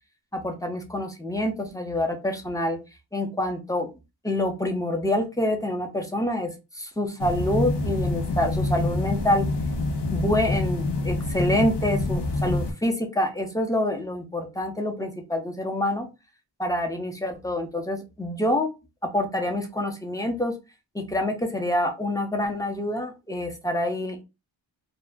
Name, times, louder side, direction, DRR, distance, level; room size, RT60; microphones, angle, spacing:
voice 1, 0.3-2.8 3.1-3.9 4.2-9.5 10.1-16.1 16.6-18.7 19.1-20.5 20.9-24.2, left 1 dB, 5° left, 3 dB, 0.7 m, -26 dB
sound 1, 7.2-12.7, left 2 dB, 60° left, 0.6 m, -26 dB
2.4 x 2.1 x 3.5 m, 0.26 s
wide cardioid pair, 55°, 48 cm